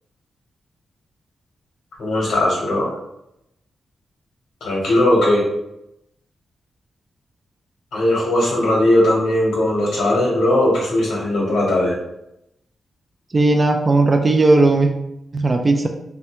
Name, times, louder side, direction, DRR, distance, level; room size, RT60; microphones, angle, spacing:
voice 1, 2.0-2.9 4.6-5.4 7.9-12.0, left 1 dB, 85° left, -5 dB, 0.8 m, -18 dB
voice 2, 13.3-14.9 15.3-15.9, right 2 dB, 30° right, 5 dB, 0.3 m, -16 dB
3.3 x 2.2 x 2.8 m, 0.83 s
cardioid pair, 100°, 0 cm